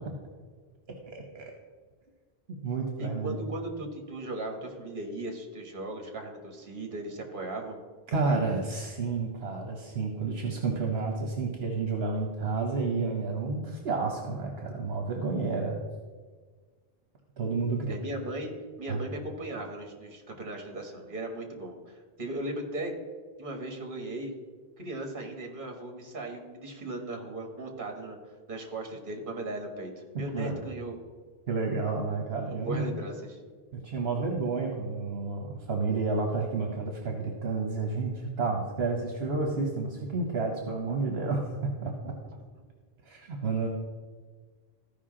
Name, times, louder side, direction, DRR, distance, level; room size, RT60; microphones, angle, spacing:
voice 1, 1.0-1.5 2.6-3.4 8.1-15.8 17.4-17.9 18.9-19.0 30.3-30.6 31.5-32.9 33.7-42.1 43.1-43.7, right 4 dB, 75° right, 1 dB, 1.2 m, -30 dB
voice 2, 3.0-7.8 8.2-8.4 17.9-18.5 18.8-22.9 23.4-24.3 24.8-28.2 28.5-29.9 30.2-31.0 32.5-33.4 42.5-42.6, right 2 dB, 55° right, 2 dB, 1.5 m, -37 dB
14.0 x 5.2 x 3.8 m, 1.5 s
omnidirectional pair, 1.1 m